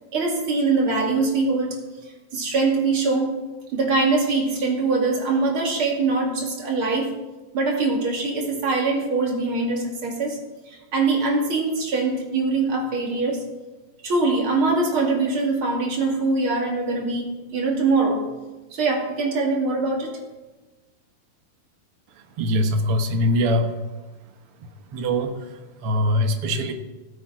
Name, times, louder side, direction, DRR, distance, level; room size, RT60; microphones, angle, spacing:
voice 1, 0.1-1.7 2.3-3.4 3.7-7.2 7.5-10.4 10.7-13.4 14.0-18.2 18.7-20.2, right 3 dB, 40° right, -1 dB, 2.9 m, -23 dB
voice 2, 22.2-23.7 24.9-26.7, equal, 55° right, 4 dB, 1.7 m, -23 dB
17.5 x 8.9 x 4.8 m, 1.2 s
omnidirectional pair, 4.0 m